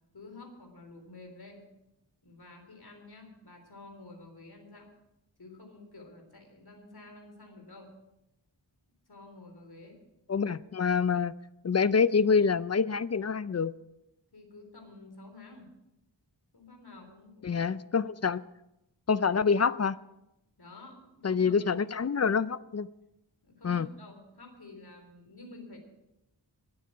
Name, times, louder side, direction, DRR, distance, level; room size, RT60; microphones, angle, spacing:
voice 1, 0.1-1.7 2.2-4.9 5.4-7.9 9.1-10.0 14.3-15.7 16.5-17.6 20.6-22.0 23.4-25.8, left 2 dB, 55° left, 3 dB, 3.7 m, -50 dB
voice 2, 10.3-11.3 11.6-13.7 17.4-18.4 19.1-20.0 21.2-22.9 23.6-23.9, left 5 dB, 35° left, 17 dB, 0.4 m, -26 dB
22.5 x 8.4 x 4.9 m, 0.88 s
wide cardioid pair, 90°, 44 cm